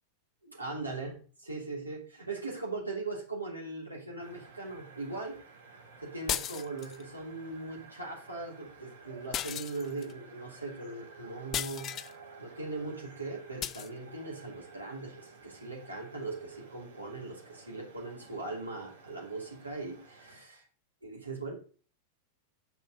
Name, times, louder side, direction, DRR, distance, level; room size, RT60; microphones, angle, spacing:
voice 1, 0.4-5.4 6.0-11.9 12.4-20.6 21.0-21.5, right 3 dB, 80° right, -1 dB, 3.1 m, -40 dB
sound 1, 4.2-20.4, right 4 dB, 65° right, 2.0 m, -53 dB
sound 2, 6.3-7.0 9.3-10.1 11.5-12.1 13.6-13.9, left 11 dB, 30° left, 0.4 m, -35 dB
7.4 x 5.4 x 6.5 m, 0.40 s
figure-of-eight pair, 90°, 0 cm